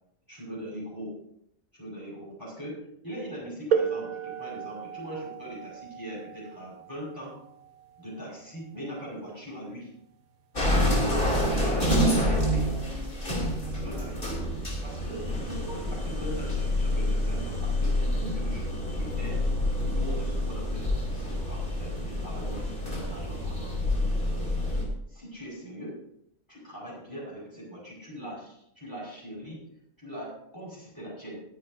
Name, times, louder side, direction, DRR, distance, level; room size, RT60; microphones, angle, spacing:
voice 1, 0.3-1.2 1.7-7.4 8.0-9.9 11.3-12.7 13.7-14.4 14.8-19.4 19.8-23.8 24.0-24.8 25.1-26.0 26.5-29.6 30.0-31.4, equal, 15° left, -6 dB, 5.6 m, -41 dB
sound 1, 3.7-9.1 10.2-10.3 11.1-11.3, right 7 dB, 85° right, 1.3 m, -34 dB
sound 2, 10.5-24.8, left 1 dB, 35° left, 3.4 m, -28 dB
20.5 x 10.0 x 2.8 m, 0.74 s
omnidirectional pair, 1.5 m